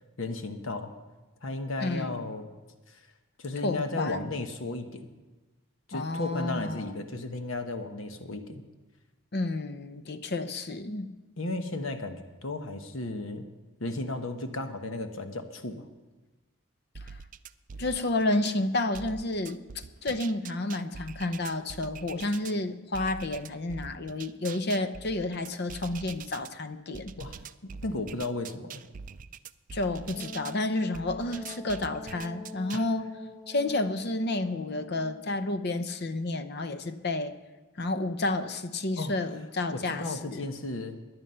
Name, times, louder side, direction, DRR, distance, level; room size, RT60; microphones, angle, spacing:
voice 1, 0.2-0.9 1.4-2.5 2.9-3.0 3.4-5.1 5.9-8.6 11.4-13.5 13.8-15.9 27.2-27.4 27.8-28.8 32.7-32.8 39.0-39.1 39.7-41.0, left 2 dB, 70° left, 7 dB, 1.1 m, -34 dB
voice 2, 1.8-2.3 3.6-4.3 5.9-6.9 9.3-11.1 17.1-17.2 17.8-27.1 29.7-33.1 33.5-37.3 37.8-40.4, left 2 dB, 50° left, 11 dB, 0.8 m, -31 dB
sound 1, 16.9-18.6 18.9-22.6 22.9-26.5 26.9-30.6 30.9-32.9, right 6 dB, 40° right, 0.4 m, -44 dB
Wind instrument woodwind instrument, 30.1-35.7, left 2 dB, 90° left, 2.5 m, -44 dB
17.0 x 11.0 x 5.6 m, 1.2 s
head